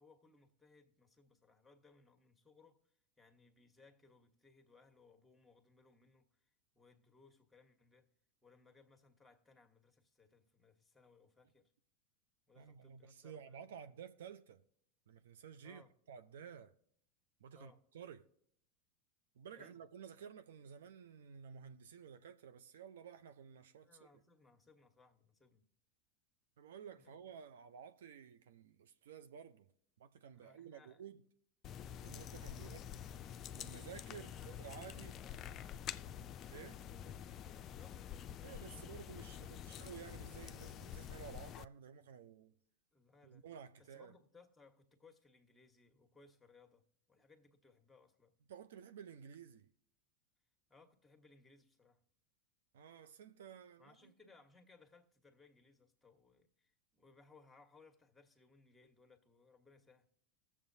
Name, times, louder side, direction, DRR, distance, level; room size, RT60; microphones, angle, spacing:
voice 1, 0.0-2.9 3.2-8.1 8.4-11.7 12.5-13.6 13.9-14.0 15.6-15.9 17.5-17.8 19.6-19.8 23.6-25.7 27.0-27.1 30.3-31.0 32.5-32.7 34.1-35.9 37.4-39.1 42.9-43.5 43.8-48.3 50.7-52.0 53.8-60.1, left 3 dB, 5° left, 1.3 m, -66 dB
voice 2, 12.6-14.6 15.1-16.7 17.4-18.3 19.4-24.2 26.6-29.7 30.0-31.2 32.0-32.8 33.5-35.2 36.5-36.8 38.4-42.6 43.2-44.1 48.5-49.7 52.7-54.1, right 7 dB, 75° right, 0.5 m, -53 dB
sound 1, 31.6-41.6, left 9 dB, 40° left, 0.4 m, -48 dB
20.0 x 7.3 x 2.7 m
hypercardioid pair, 85°, 0 cm